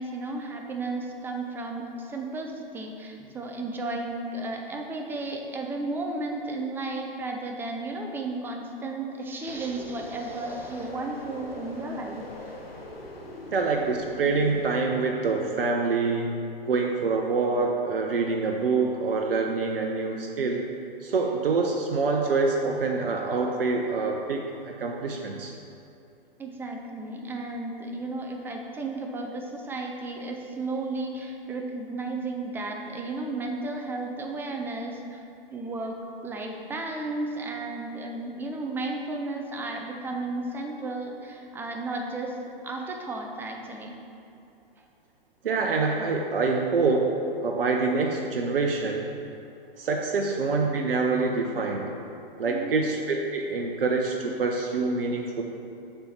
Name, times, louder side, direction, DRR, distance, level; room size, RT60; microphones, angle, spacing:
voice 1, 0.0-12.3 26.4-35.2 35.5-42.4 42.6-44.0 52.5-52.8, right 2 dB, 5° right, 2 dB, 0.5 m, -33 dB
sound 1, 9.5-14.7, left 2 dB, 90° left, 1.0 m, -42 dB
voice 2, 13.5-16.4 16.7-20.6 21.0-25.5 45.4-49.1 49.8-51.9 52.4-55.4, right 4 dB, 75° right, 1 dB, 0.7 m, -26 dB
6.8 x 4.6 x 5.7 m, 2.7 s
figure-of-eight pair, 115°, 29 cm